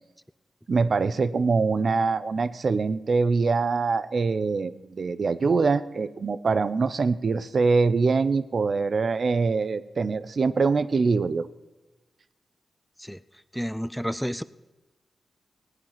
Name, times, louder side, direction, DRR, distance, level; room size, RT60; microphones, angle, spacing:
voice 1, 0.7-11.5, right 4 dB, 60° right, 13 dB, 0.6 m, -24 dB
voice 2, 13.5-14.4, equal, ahead, 14 dB, 0.4 m, -30 dB
17.5 x 9.0 x 5.8 m, 1.1 s
cardioid pair, 70°, 0 cm